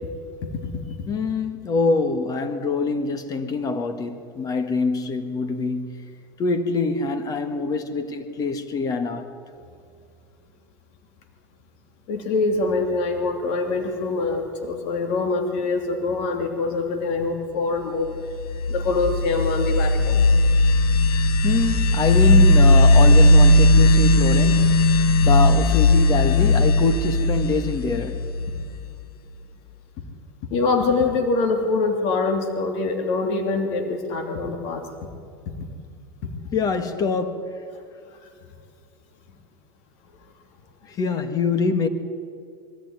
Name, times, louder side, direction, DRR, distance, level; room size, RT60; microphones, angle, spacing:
voice 1, 0.4-1.1 12.1-18.1 18.7-20.2 30.5-35.1 35.5-35.6 36.2-36.3 38.2-38.3, left 3 dB, 60° left, 2.8 m, -24 dB
voice 2, 1.1-6.1 6.4-9.3 21.4-28.2 36.5-37.6 40.9-41.9, left 4 dB, 35° left, 1.8 m, -24 dB
sound 1, 18.3-28.8, left 1 dB, 80° left, 1.3 m, -17 dB
22.0 x 14.5 x 9.6 m
supercardioid pair, 115°, 11 cm